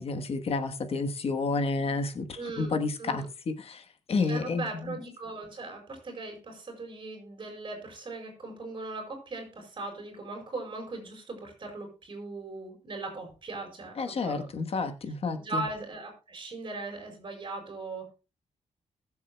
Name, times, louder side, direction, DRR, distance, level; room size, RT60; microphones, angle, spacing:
voice 1, 0.0-5.0 14.0-15.6, left 3 dB, 55° left, 1.2 m, -30 dB
voice 2, 2.4-2.7 3.0-3.3 4.3-14.5 15.4-18.1, right 3 dB, 40° right, 4.8 m, -39 dB
21.0 x 7.2 x 2.2 m
wide cardioid pair, 165°, 12 cm